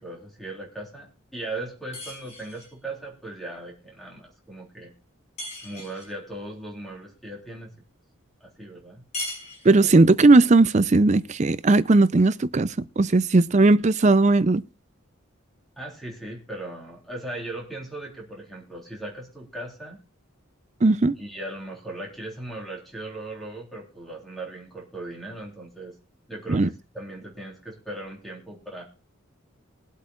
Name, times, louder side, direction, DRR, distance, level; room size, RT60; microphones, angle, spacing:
voice 1, 0.0-4.9 5.6-7.8 8.4-9.0 15.8-20.0 21.2-26.0 26.3-28.8, right 2 dB, ahead, 3.4 m, -38 dB
sound 1, 1.9-2.8 5.4-6.2 9.1-10.1, left 2 dB, 30° left, 6.0 m, -37 dB
voice 2, 9.6-14.6 20.8-21.1 26.5-26.7, right 2 dB, 35° right, 0.5 m, -18 dB
22.0 x 8.2 x 2.4 m
head